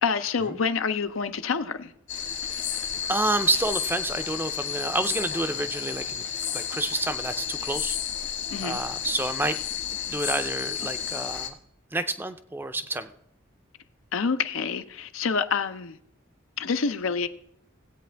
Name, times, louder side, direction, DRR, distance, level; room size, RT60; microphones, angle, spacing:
voice 1, 0.0-1.9 8.5-8.8 14.1-16.0 16.6-17.3, left 5 dB, 85° left, 0.6 m, -27 dB
sound 1, 2.1-11.5, left 8 dB, 60° left, 1.4 m, -32 dB
voice 2, 3.1-6.3 6.5-8.0 8.6-9.6 10.1-11.6 11.9-13.1, right 2 dB, 10° right, 0.4 m, -29 dB
17.0 x 8.5 x 3.4 m
head